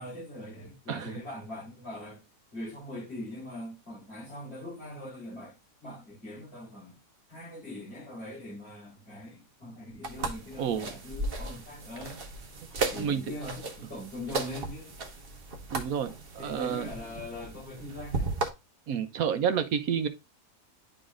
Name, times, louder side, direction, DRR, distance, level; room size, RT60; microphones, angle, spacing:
voice 1, 0.0-2.2 2.5-7.0 7.3-12.2 12.9-14.9 16.4-18.3, left 1 dB, 35° left, 3.6 m, -42 dB
walking barefoot, 10.0-18.5, right 3 dB, 40° right, 1.1 m, -36 dB
voice 2, 10.6-10.9 12.9-13.2 15.7-16.9 18.9-20.1, right 8 dB, 65° right, 1.0 m, -29 dB
11.0 x 3.9 x 2.4 m
omnidirectional pair, 1.8 m